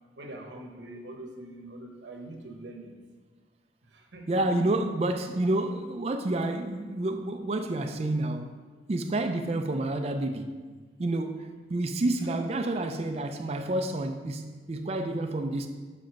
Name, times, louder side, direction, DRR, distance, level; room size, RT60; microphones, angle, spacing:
voice 1, 0.2-2.9 3.9-4.4, right 1 dB, 90° right, 2 dB, 1.1 m, -43 dB
voice 2, 4.3-8.5 8.9-10.6 11.0-15.7, right 2 dB, 35° right, 5 dB, 0.4 m, -29 dB
5.1 x 5.1 x 5.8 m, 1.4 s
head